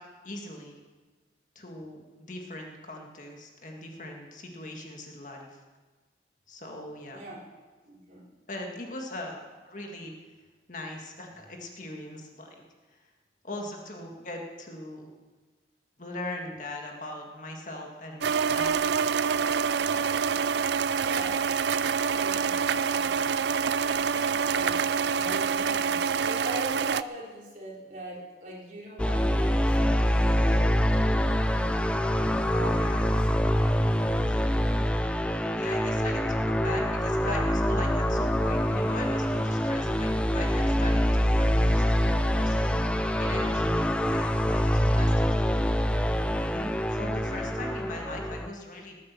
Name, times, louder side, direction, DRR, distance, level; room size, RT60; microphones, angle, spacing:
voice 1, 0.2-0.8 1.6-5.6 6.5-7.2 8.5-10.1 10.7-12.6 12.9-13.0 13.4-15.1 16.0-19.1 32.5-33.1 34.2-34.5 34.8-34.9 35.4-42.8 43.2-45.7 46.5-49.0, left 2 dB, 45° left, 1 dB, 1.9 m, -40 dB
voice 2, 7.1-7.5 7.9-8.3 18.7-21.4 22.1-23.1 23.9-31.0 32.8-33.2 34.4-34.9 35.6-36.3 47.2-47.5, right 1 dB, 45° right, -4 dB, 4.0 m, -43 dB
sound 1, 18.2-27.0, right 6 dB, 75° right, 0.4 m, -26 dB
sound 2, 29.0-48.5, equal, 5° left, 0.5 m, -25 dB
19.0 x 8.5 x 7.1 m, 1.3 s
head